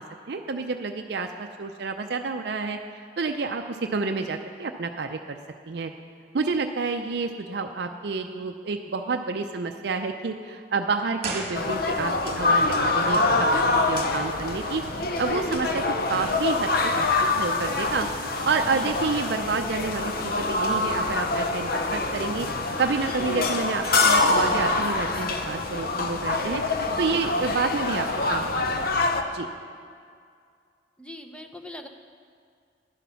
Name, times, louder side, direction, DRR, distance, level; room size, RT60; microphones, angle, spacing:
voice 1, 0.0-2.8 3.2-5.4 5.7-5.9 6.3-13.5 13.9-14.8 15.2-15.8 16.1-18.1 18.4-22.5 22.8-26.6 27.0-28.9 29.3-29.5, right 4 dB, 65° right, 5 dB, 0.5 m, -29 dB
sound 1, 11.2-12.3 12.5-12.6, right 3 dB, 35° right, 1.5 m, -34 dB
sound 2, 11.5-29.2, left 3 dB, 55° left, 0.8 m, -25 dB
voice 2, 31.0-31.9, left 1 dB, 5° left, 5 dB, 0.7 m, -40 dB
11.5 x 10.0 x 5.7 m, 2.2 s
head